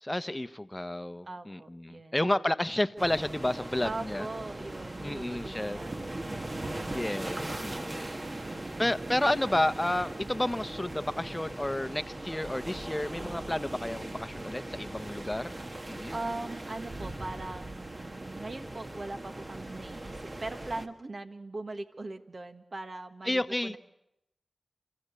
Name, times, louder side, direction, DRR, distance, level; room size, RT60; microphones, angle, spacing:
voice 1, 0.0-4.3 5.0-5.8 6.9-8.1 8.8-15.5 15.9-16.1 23.3-23.8, left 1 dB, 20° left, 12 dB, 1.0 m, -31 dB
voice 2, 1.2-2.3 3.8-7.0 8.1-9.1 16.1-23.8, right 2 dB, 55° right, 7 dB, 1.7 m, -41 dB
sound 1, 3.0-20.9, right 1 dB, 40° right, 1.7 m, -39 dB
29.5 x 14.0 x 8.3 m, 0.83 s
cardioid pair, 45°, 0 cm